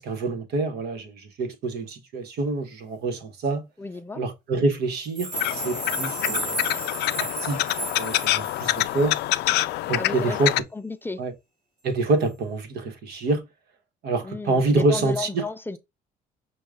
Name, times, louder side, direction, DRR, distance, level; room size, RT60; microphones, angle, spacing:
voice 1, 0.0-3.7 4.1-6.6 7.2-7.7 8.0-9.2 9.8-10.5 11.2-11.3 11.8-13.4 14.0-15.4, right 3 dB, 70° right, 1.2 m, -26 dB
voice 2, 3.8-4.2 6.2-6.4 9.9-10.4 10.7-11.2 14.2-15.8, left 3 dB, 10° left, 0.4 m, -33 dB
sound 1, 5.0-9.3 9.6-9.7, right 2 dB, 45° right, 2.6 m, -33 dB
sound 2, 5.3-10.6, left 16 dB, 80° left, 0.4 m, -26 dB
6.3 x 2.3 x 3.6 m
cardioid pair, 110°, 17 cm